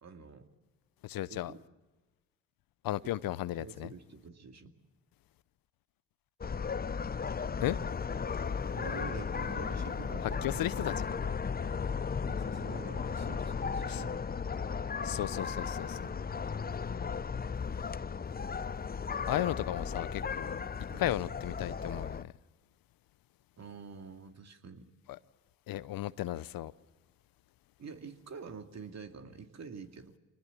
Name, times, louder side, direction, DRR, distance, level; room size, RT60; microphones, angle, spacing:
voice 1, 0.0-0.5 1.3-1.6 3.6-4.7 8.7-11.3 12.2-14.2 16.0-16.2 20.9-21.0 23.6-24.9 27.8-30.2, right 5 dB, 50° right, 2.4 m, -47 dB
voice 2, 1.0-1.5 2.8-3.9 7.6-7.8 10.4-10.9 13.9-14.0 15.0-16.1 19.3-20.6 21.0-22.3 25.1-25.2 25.7-26.7, left 14 dB, 75° left, 0.8 m, -35 dB
sound 1, 6.4-22.2, left 6 dB, 25° left, 0.7 m, -35 dB
25.5 x 19.5 x 7.0 m
supercardioid pair, 60°, 34 cm